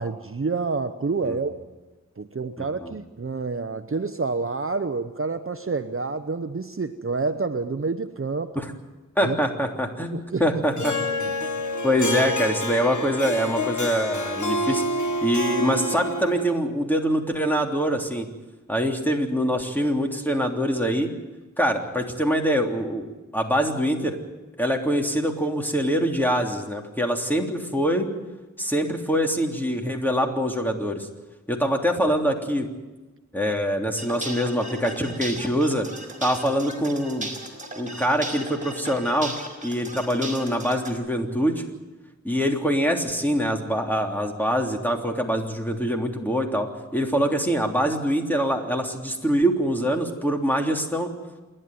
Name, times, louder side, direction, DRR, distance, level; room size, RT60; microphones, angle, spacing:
voice 1, 0.0-1.6 2.2-8.6 9.2-9.4 10.1-10.5 11.2-11.3, right 4 dB, 45° right, 9 dB, 0.9 m, -28 dB
voice 2, 2.6-2.9 8.5-8.7 9.2-10.9 11.8-14.9 15.2-18.3 18.7-21.1 21.6-23.1 23.3-24.2 24.6-28.1 28.6-31.1 31.5-32.7 33.3-35.8 36.2-37.3 37.7-39.3 39.6-41.6 42.2-51.1, equal, 5° left, 2 dB, 3.2 m, -24 dB
Harp, 10.8-16.6, left 1 dB, 70° left, 1.8 m, -28 dB
sound 1, 34.0-40.9, right 1 dB, 25° right, 4.9 m, -36 dB
28.0 x 11.0 x 9.2 m, 1.2 s
wide cardioid pair, 55°, 31 cm